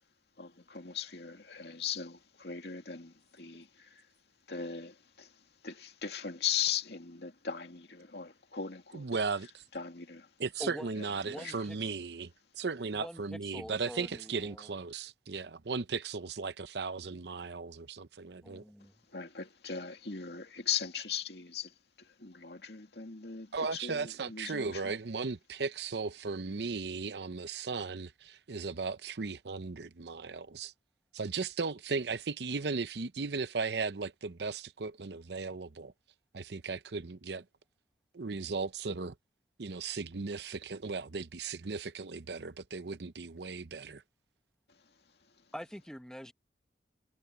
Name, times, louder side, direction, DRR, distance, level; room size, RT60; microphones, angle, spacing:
voice 1, 0.4-4.1 4.5-9.1 9.7-10.3 11.0-11.6 18.8-24.9 44.7-44.8, left 8 dB, 70° left, 2.3 m, -39 dB
voice 2, 8.9-9.6 10.4-18.6 23.5-30.7 31.1-35.9 36.3-37.4 38.1-39.1 39.6-44.0, right 4 dB, 70° right, 0.7 m, -36 dB
voice 3, 11.3-11.8 12.9-14.7 18.4-18.9 45.5-46.3, equal, 5° left, 1.3 m, -45 dB
head